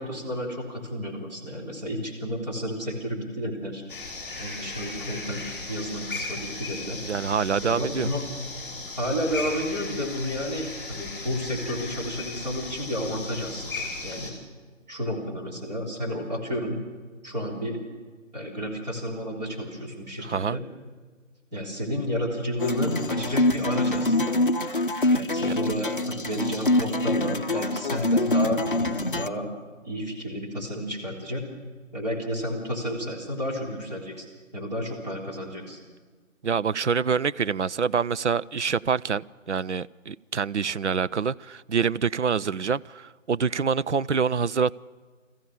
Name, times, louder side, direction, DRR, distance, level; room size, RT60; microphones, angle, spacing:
voice 1, 0.0-3.8 4.4-7.0 7.6-8.2 9.0-14.3 14.9-16.8 17.2-17.8 18.3-20.6 21.5-24.5 25.1-29.5 29.8-31.4 31.9-34.3 34.5-35.8, equal, 30° right, 3.5 m, -31 dB
sound 1, 3.9-14.3, left 3 dB, 5° left, 2.8 m, -36 dB
voice 2, 7.0-8.1 20.2-20.6 25.4-25.6 36.4-44.7, right 6 dB, 60° right, 0.5 m, -26 dB
sound 2, 22.6-29.3, left 2 dB, 40° left, 0.7 m, -25 dB
21.0 x 14.5 x 8.6 m
figure-of-eight pair, 165°, 39 cm